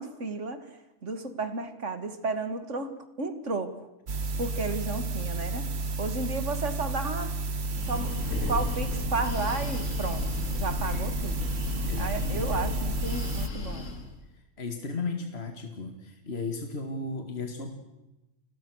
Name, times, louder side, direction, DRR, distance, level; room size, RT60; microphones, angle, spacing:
voice 1, 0.0-3.9 4.4-5.7 6.0-7.3 7.9-11.5 12.0-13.9, right 3 dB, 75° right, 10 dB, 2.4 m, -33 dB
sound 1, 4.1-13.5, right 3 dB, 60° right, 1.5 m, -32 dB
Breathing, 7.5-14.2, left 2 dB, 80° left, 2.8 m, -34 dB
voice 2, 11.9-12.6 14.6-17.7, left 3 dB, 55° left, 5 dB, 2.3 m, -35 dB
29.5 x 21.0 x 6.4 m, 1.0 s
omnidirectional pair, 1.3 m